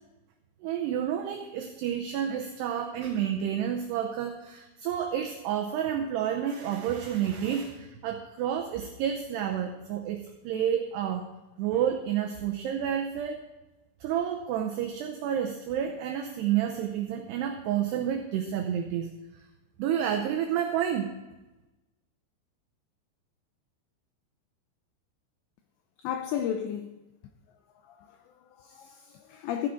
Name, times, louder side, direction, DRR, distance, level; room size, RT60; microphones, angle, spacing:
voice 1, 0.6-11.3 11.6-13.4 14.0-19.1 19.8-21.1, right 9 dB, 90° right, 2.3 m, -30 dB
voice 2, 26.0-26.9 27.8-29.7, left 9 dB, 90° left, 2.5 m, -34 dB
15.0 x 9.5 x 3.7 m
omnidirectional pair, 5.8 m